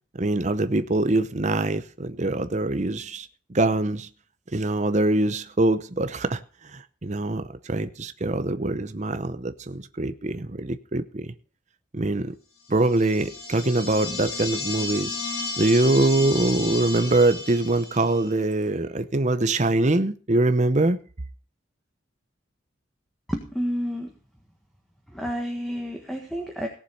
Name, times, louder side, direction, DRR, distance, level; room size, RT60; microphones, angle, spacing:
voice 1, 0.2-4.1 4.5-6.4 7.0-11.3 11.9-12.3 12.7-15.1 15.6-21.0, right 2 dB, 35° right, 0.8 m, -23 dB
sound 1, 12.8-18.2, left 3 dB, 65° left, 6.3 m, -33 dB
voice 2, 23.3-24.1 25.1-26.7, equal, ahead, 1.6 m, -30 dB
17.5 x 7.4 x 5.4 m
head